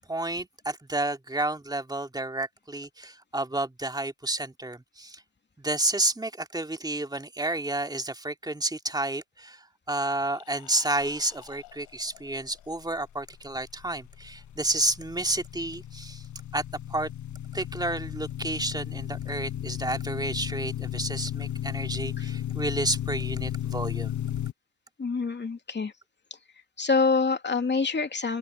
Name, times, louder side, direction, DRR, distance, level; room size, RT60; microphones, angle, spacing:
voice 1, 0.1-5.2 5.6-16.2 16.5-16.6 16.9-17.1 17.5-24.2, right 2 dB, 10° right, 2.5 m, -30 dB
sound 1, 10.0-13.1, left 18 dB, 80° left, 5.6 m, -52 dB
sound 2, 13.7-24.5, left 11 dB, 45° left, 1.5 m, -34 dB
voice 2, 25.0-25.9 26.8-28.4, left 4 dB, 25° left, 2.8 m, -26 dB
open air
supercardioid pair, 80°, 41 cm